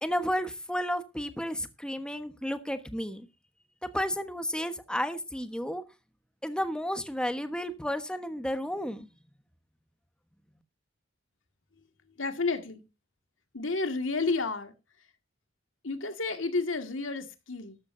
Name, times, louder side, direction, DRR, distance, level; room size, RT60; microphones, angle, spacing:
voice 1, 0.0-3.3 3.8-5.8 6.4-9.1, equal, 5° left, 1.2 m, -32 dB
voice 2, 12.1-12.8 13.5-14.7 15.8-17.8, left 3 dB, 85° left, 2.1 m, -31 dB
13.0 x 13.0 x 2.7 m
head